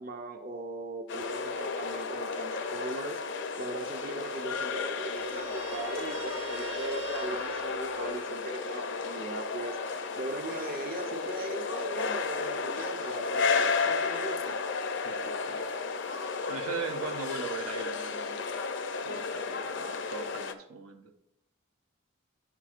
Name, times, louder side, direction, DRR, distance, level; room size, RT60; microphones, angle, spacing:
voice 1, 0.0-3.2 3.6-14.6, right 2 dB, 40° right, 4 dB, 0.5 m, -39 dB
sound 1, 1.1-20.5, left 4 dB, 55° left, 0.5 m, -33 dB
Guitar, 5.1-8.7, right 5 dB, 60° right, 1.3 m, -46 dB
voice 2, 15.0-15.6 16.5-18.4 19.0-21.1, right 5 dB, 80° right, 6 dB, 0.7 m, -39 dB
9.8 x 5.9 x 2.4 m, 0.87 s
head